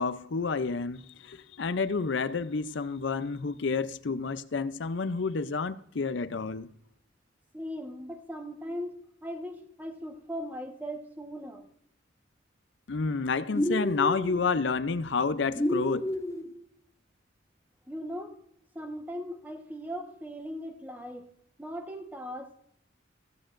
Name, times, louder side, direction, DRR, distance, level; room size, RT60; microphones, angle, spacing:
voice 1, 0.0-6.7 12.9-16.1, left 4 dB, 70° left, 0.5 m, -30 dB
voice 2, 7.5-11.7 17.9-18.4 18.7-21.3 21.6-22.7, equal, 10° right, 1.2 m, -39 dB
sound 1, 13.5-14.4 15.6-16.5, left 1 dB, 15° left, 0.7 m, -29 dB
15.0 x 15.0 x 2.5 m
head